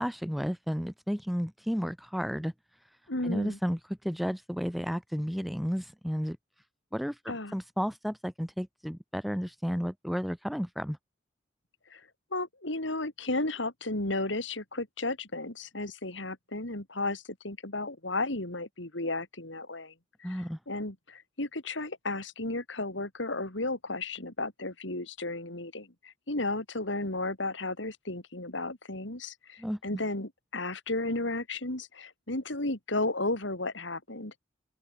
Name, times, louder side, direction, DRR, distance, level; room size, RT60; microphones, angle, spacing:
voice 1, 0.0-2.5 3.2-3.8 4.0-6.4 6.9-7.2 7.5-11.0 20.2-20.6 29.6-29.8, equal, ahead, 0.9 m, -32 dB
voice 2, 3.1-3.6 7.3-7.6 11.9-12.0 12.3-19.9 20.2-34.4, left 2 dB, 75° left, 3.8 m, -34 dB
open air
head